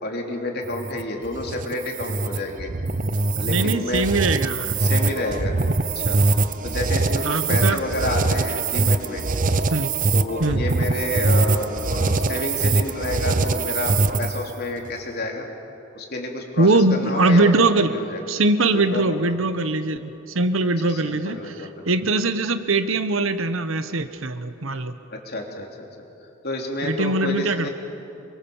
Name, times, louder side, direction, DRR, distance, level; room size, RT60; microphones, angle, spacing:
voice 1, 0.0-2.7 3.4-4.1 4.8-5.6 5.9-6.2 6.6-9.2 10.1-15.5 15.9-18.2 18.6-19.3 20.9-22.0 25.1-25.7 26.4-27.7, left 2 dB, 50° left, 1 dB, 3.4 m, -29 dB
sound 1, 0.6-14.5, right 3 dB, 40° right, 0.8 m, -23 dB
voice 2, 3.3-4.7 7.2-7.8 9.7-9.9 10.4-10.6 16.6-17.9 18.3-24.9 26.8-27.7, right 2 dB, 70° right, 11 dB, 1.1 m, -22 dB
28.0 x 23.0 x 7.2 m, 2.8 s
head